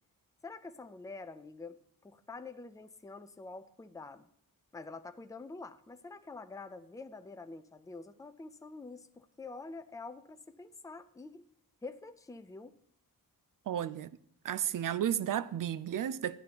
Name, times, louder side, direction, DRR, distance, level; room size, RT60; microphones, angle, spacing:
voice 1, 0.4-4.3 4.7-11.5 11.8-12.7, left 3 dB, 10° left, 0.4 m, -47 dB
voice 2, 13.7-14.1 14.4-16.4, right 10 dB, 65° right, 0.5 m, -33 dB
14.0 x 11.0 x 2.9 m
wide cardioid pair, 165°, 35 cm